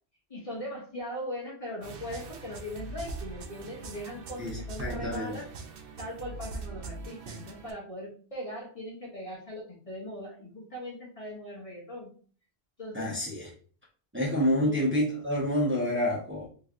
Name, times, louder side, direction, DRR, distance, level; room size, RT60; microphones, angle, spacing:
voice 1, 0.3-5.5 6.0-12.1 12.8-13.1 14.6-14.8, equal, 35° left, -4 dB, 1.0 m, -40 dB
sound 1, 1.8-7.7, right 3 dB, 65° right, 0.7 m, -41 dB
voice 2, 4.4-5.4 12.9-13.5 14.1-16.5, equal, 10° right, -5 dB, 0.9 m, -28 dB
3.2 x 2.9 x 2.4 m, 0.42 s
omnidirectional pair, 1.1 m